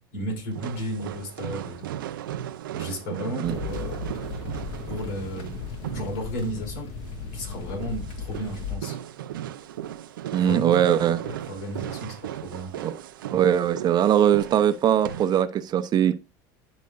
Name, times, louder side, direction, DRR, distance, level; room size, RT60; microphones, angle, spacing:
voice 1, 0.0-1.9 2.7-4.3 4.9-5.6 5.9-6.9 7.3-9.0 10.4-10.8 11.2-12.7, equal, 70° left, 4.7 m, -34 dB
sound 1, 0.5-15.4, right 11 dB, 90° right, 0.6 m, -37 dB
sound 2, 3.4-8.8, left 5 dB, 55° left, 1.7 m, -36 dB
voice 2, 10.3-11.2 12.8-12.9 13.3-16.2, right 10 dB, 40° right, 0.7 m, -21 dB
10.5 x 5.1 x 2.5 m
supercardioid pair, 100°, 11 cm